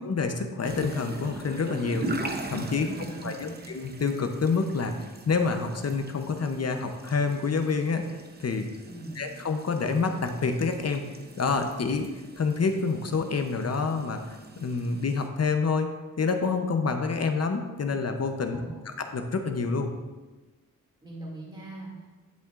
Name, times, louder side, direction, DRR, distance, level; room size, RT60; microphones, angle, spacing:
voice 1, 0.0-8.1 8.4-8.7 9.2-11.0 11.4-12.1 12.4-15.9 16.2-19.9, left 4 dB, 45° left, 6 dB, 0.7 m, -28 dB
sound 1, 0.6-15.3, right 2 dB, 30° right, 0.7 m, -40 dB
voice 2, 2.9-3.7 8.8-9.3 18.5-18.9 21.0-22.1, right 2 dB, 15° right, -4 dB, 2.3 m, -41 dB
10.5 x 6.8 x 2.5 m, 1.2 s
wide cardioid pair, 135°, 34 cm